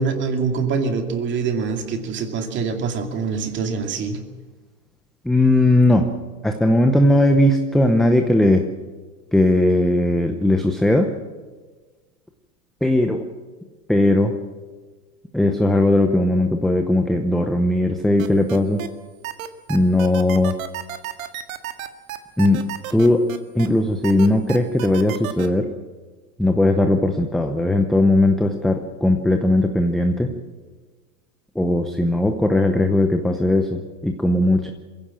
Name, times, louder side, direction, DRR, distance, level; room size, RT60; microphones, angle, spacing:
voice 1, 0.0-4.2, right 5 dB, 25° right, 5 dB, 2.5 m, -24 dB
voice 2, 5.2-6.1 6.4-8.6 9.3-11.1 12.8-13.2 13.9-14.4 15.3-18.9 19.7-20.6 22.4-22.6 22.9-23.3 23.5-25.7 26.4-30.3 31.5-34.7, left 1 dB, ahead, 5 dB, 0.6 m, -18 dB
sound 1, 18.2-18.9 19.2-23.7 24.0-25.5, right 12 dB, 60° right, 2.0 m, -31 dB
22.5 x 16.0 x 7.6 m, 1.3 s
hypercardioid pair, 140°, 46 cm